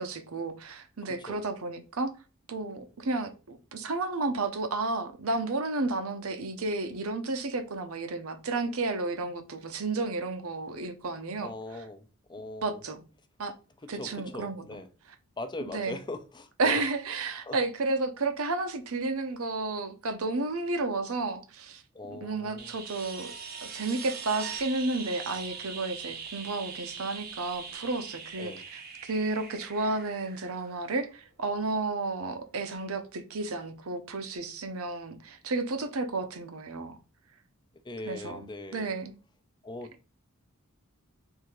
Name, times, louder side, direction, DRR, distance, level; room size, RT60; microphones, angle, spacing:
voice 1, 0.0-2.1 2.5-11.5 12.6-13.0 13.4-13.5 13.9-14.6 15.7-16.0 16.6-21.8 22.1-23.3 23.7-37.0 38.0-39.1, right 3 dB, 70° right, 0.8 m, -32 dB
voice 2, 1.1-1.4 11.4-12.8 13.9-14.9 15.4-16.8 17.4-17.6 21.9-22.7 28.4-28.6 37.8-38.9 39.6-40.1, left 2 dB, 20° left, 0.5 m, -40 dB
sound 1, 22.6-31.3 33.6-33.7, right 6 dB, 45° right, 0.8 m, -42 dB
3.7 x 2.7 x 4.6 m
head